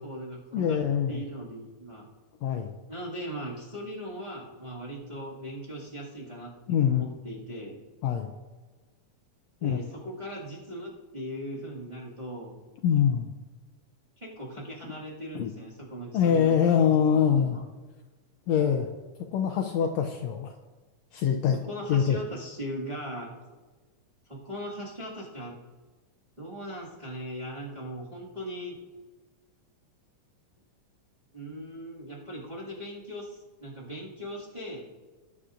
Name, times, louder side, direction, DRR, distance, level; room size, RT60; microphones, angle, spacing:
voice 1, 0.0-0.8 1.1-2.1 2.9-6.5 6.9-7.8 9.6-12.6 14.2-17.6 21.5-23.3 24.3-25.6 26.4-28.7 31.3-34.9, equal, 15° right, -7 dB, 1.6 m, -39 dB
voice 2, 0.5-1.2 2.4-2.8 6.7-7.0 8.0-8.3 9.6-9.8 12.8-13.3 14.8-14.9 15.3-15.5 16.1-17.6 18.5-18.9 19.3-20.5 21.1-21.6 21.9-22.2, left 8 dB, 75° left, 5 dB, 1.7 m, -24 dB
19.0 x 8.5 x 2.5 m, 1.3 s
omnidirectional pair, 3.5 m